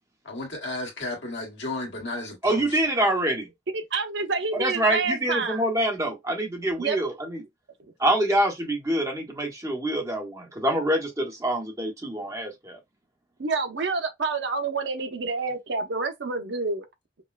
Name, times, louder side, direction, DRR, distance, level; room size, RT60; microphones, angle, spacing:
voice 1, 0.2-2.8, left 2 dB, 80° left, 1.6 m, -33 dB
voice 2, 2.4-3.5 4.5-7.4 8.0-12.8, right 1 dB, 20° right, 1.1 m, -26 dB
voice 3, 3.7-5.6 6.8-7.0 13.4-16.9, right 4 dB, 70° right, 0.7 m, -28 dB
5.4 x 2.2 x 2.4 m
head